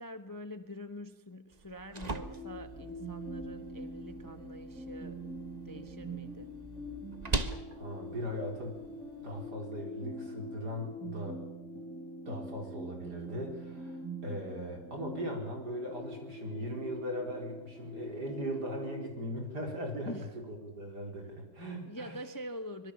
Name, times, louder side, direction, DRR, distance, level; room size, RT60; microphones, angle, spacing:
voice 1, 0.0-5.2 5.6-6.5 20.0-20.3 21.9-22.9, equal, 15° left, 9 dB, 0.9 m, -45 dB
sound 1, 1.5-9.5, right 2 dB, 25° right, 1.3 m, -42 dB
sound 2, 2.1-19.1, right 1 dB, ahead, 5.7 m, -44 dB
voice 2, 7.4-8.8 9.2-11.4 12.3-22.2, equal, 70° right, 2 dB, 5.3 m, -39 dB
24.5 x 22.0 x 7.2 m, 0.91 s
omnidirectional pair, 1.8 m